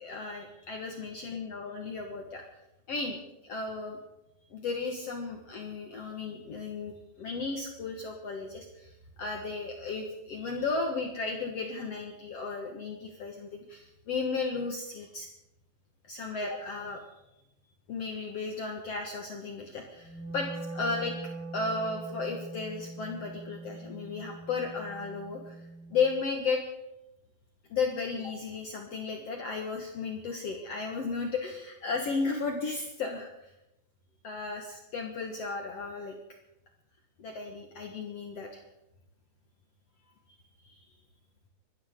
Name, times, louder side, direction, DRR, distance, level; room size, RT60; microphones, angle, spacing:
voice 1, 0.0-2.4 2.9-4.0 4.5-8.9 9.2-15.3 16.1-17.0 17.9-21.1 21.5-25.6 25.9-26.6 27.7-33.3 34.2-36.1 37.2-38.6 40.6-40.8, left 4 dB, 55° left, 2 dB, 2.3 m, -34 dB
Wind instrument woodwind instrument, 20.0-26.2, right 3 dB, 10° left, 0.4 m, -42 dB
25.0 x 13.5 x 3.8 m, 0.90 s
omnidirectional pair, 3.8 m